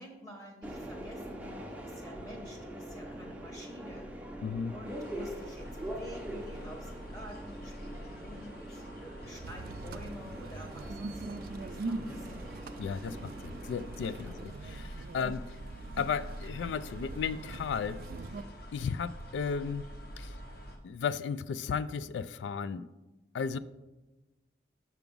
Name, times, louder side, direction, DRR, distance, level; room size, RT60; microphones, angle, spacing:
voice 1, 0.0-4.1 4.7-12.4 14.2-14.3, equal, 20° left, 0.9 m, -49 dB
Subway metro underground, 0.6-14.4, right 1 dB, 5° right, 0.6 m, -43 dB
voice 2, 4.4-4.7 12.8-15.5 16.0-18.0 18.7-19.9 20.2-20.3 20.8-22.9 23.3-23.6, left 6 dB, 75° left, 0.3 m, -34 dB
sound 1, 4.9-20.8, equal, 50° left, 0.9 m, -47 dB
sound 2, 9.4-18.4, right 3 dB, 50° right, 0.3 m, -43 dB
5.9 x 5.8 x 5.3 m
head